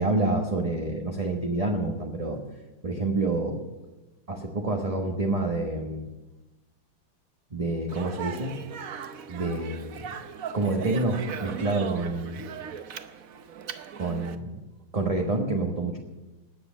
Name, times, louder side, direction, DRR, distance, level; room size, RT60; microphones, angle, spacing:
voice 1, 0.0-2.4 2.8-3.6 4.3-6.1 7.5-8.6 9.3-10.0 10.5-12.4 14.0-14.6 14.9-16.0, right 2 dB, 20° right, 1 dB, 1.1 m, -28 dB
Speech, 7.9-14.4, right 7 dB, 55° right, 1.0 m, -38 dB
18.5 x 9.7 x 6.3 m, 1.1 s
omnidirectional pair, 2.2 m